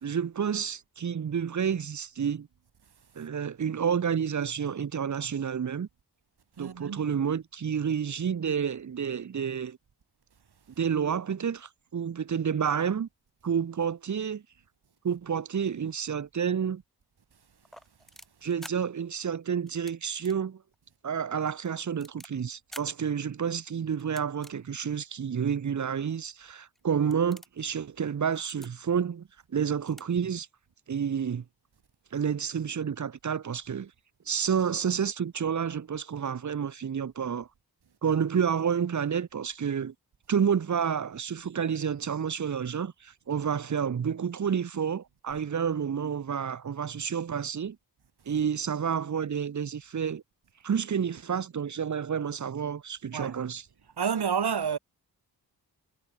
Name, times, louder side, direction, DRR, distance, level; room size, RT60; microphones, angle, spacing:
voice 1, 0.0-2.5 3.2-5.9 6.6-9.8 10.8-13.1 13.4-14.4 15.0-16.8 18.4-20.6 21.0-30.5 30.9-31.4 32.1-33.9 34.3-37.5 38.0-39.9 40.3-47.8 48.3-50.2 50.6-53.6, right 7 dB, 50° right, 0.9 m, -29 dB
voice 2, 6.6-7.0 53.1-53.4 54.0-54.8, right 7 dB, 75° right, 5.5 m, -29 dB
sound 1, 17.6-18.7 19.7-19.9 20.2-20.4 20.7-20.8 21.4-22.3 22.7-22.9 24.0-24.5 25.2-25.3 26.1-26.2 26.7-26.8 27.1-27.6 28.3-28.7 29.6-29.7 29.9-30.1 30.3-30.4, equal, ahead, 5.4 m, -47 dB
wide cardioid pair, 165°, 39 cm